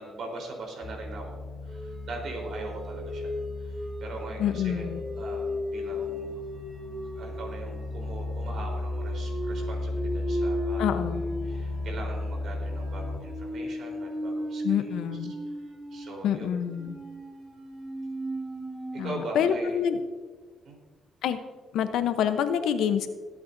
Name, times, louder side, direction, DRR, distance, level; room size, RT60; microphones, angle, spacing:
voice 1, 0.0-6.6 7.2-11.0 11.4-14.9 15.5-15.6 15.9-16.5 18.9-19.8 20.6-20.8, right 2 dB, 65° right, 1 dB, 3.9 m, -41 dB
sound 1, 0.8-13.2, left 2 dB, 40° left, 1.8 m, -35 dB
sound 2, 1.7-19.6, equal, 25° right, 4.1 m, -36 dB
voice 2, 4.4-5.0 10.8-11.2 14.6-15.3 16.2-17.0 19.0-20.0 21.2-21.4 21.7-23.1, left 8 dB, 80° left, 9 dB, 0.9 m, -27 dB
21.0 x 8.7 x 2.7 m, 1.5 s
cardioid pair, 90°, 0 cm